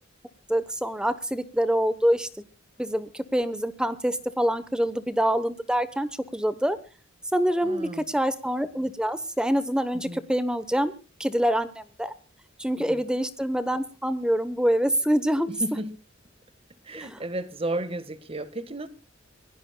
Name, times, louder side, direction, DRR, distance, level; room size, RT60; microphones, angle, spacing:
voice 1, 0.5-2.4 2.8-6.8 7.3-10.9 11.2-12.1 12.6-15.5 16.9-17.2, equal, 5° right, 0.9 m, -26 dB
voice 2, 7.6-8.1 10.0-10.2 12.8-13.0 15.5-15.9 16.8-18.9, right 1 dB, 30° right, 1.4 m, -33 dB
25.5 x 17.5 x 2.2 m
head